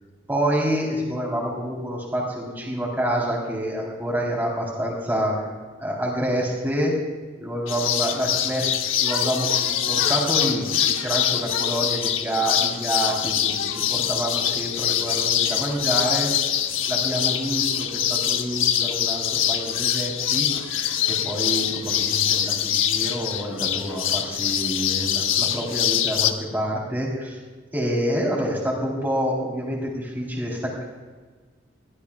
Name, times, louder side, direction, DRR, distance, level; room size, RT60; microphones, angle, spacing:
voice 1, 0.3-5.5 5.8-7.0 7.4-10.7 10.9-16.3 16.9-20.5 21.1-27.4 27.7-30.8, equal, 10° right, -2 dB, 3.8 m, -27 dB
sound 1, 7.7-26.3, left 10 dB, 85° left, 0.9 m, -24 dB
21.0 x 16.5 x 2.4 m, 1.4 s
head